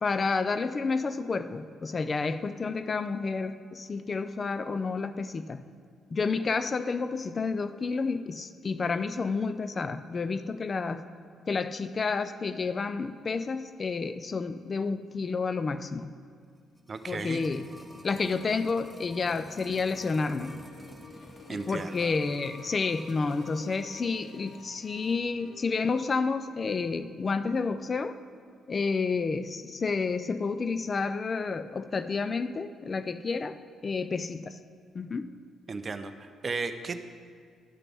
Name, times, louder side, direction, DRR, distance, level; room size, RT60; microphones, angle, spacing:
voice 1, 0.0-5.6 6.1-11.0 11.5-16.1 17.1-17.7 18.0-20.6 21.5-28.2 28.7-33.6 33.8-34.6 34.9-35.3, left 4 dB, 35° left, 12 dB, 0.3 m, -30 dB
sound 1, 16.5-24.0 24.2-24.3, equal, ahead, 0.7 m, -50 dB
voice 2, 16.9-17.4 21.5-22.1 35.7-37.0, right 4 dB, 35° right, 10 dB, 0.5 m, -35 dB
sound 2, 19.7-25.7, left 5 dB, 85° left, 0.7 m, -50 dB
12.0 x 5.8 x 3.5 m, 2.1 s
cardioid pair, 90°, 0 cm